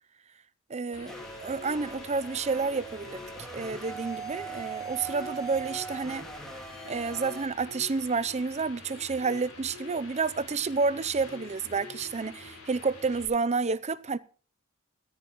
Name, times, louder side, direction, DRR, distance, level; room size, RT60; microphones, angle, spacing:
voice 1, 0.7-1.1 1.4-3.2 3.5-6.3 6.9-14.2, right 4 dB, 30° right, 0.6 m, -30 dB
sound 1, 0.9-13.2, left 3 dB, 70° left, 7.7 m, -46 dB
sound 2, 1.1-7.5, right 5 dB, 5° left, 2.7 m, -41 dB
20.0 x 14.0 x 3.1 m
head